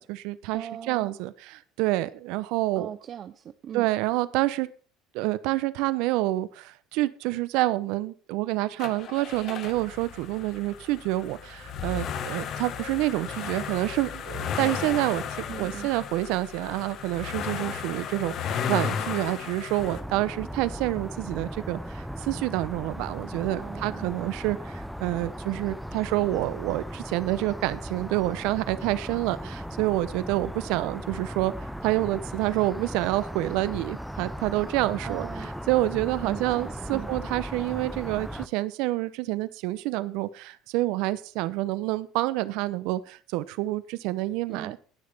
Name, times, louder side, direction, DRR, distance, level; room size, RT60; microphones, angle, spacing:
voice 1, 0.0-2.9 3.7-4.7 5.1-15.2 15.5-31.5 31.8-35.3 35.7-44.8, right 17 dB, 75° right, 16 dB, 0.8 m, -28 dB
voice 2, 0.5-1.2 2.8-3.9 15.5-15.9 23.6-24.1 35.0-35.5 36.2-37.1 44.5-44.8, right 9 dB, 45° right, 11 dB, 0.7 m, -39 dB
sound 1, 8.8-20.0, left 7 dB, 55° left, 1.6 m, -34 dB
sound 2, 19.8-38.5, equal, ahead, 0.7 m, -37 dB
19.5 x 6.5 x 3.6 m, 0.38 s
supercardioid pair, 90°, 0 cm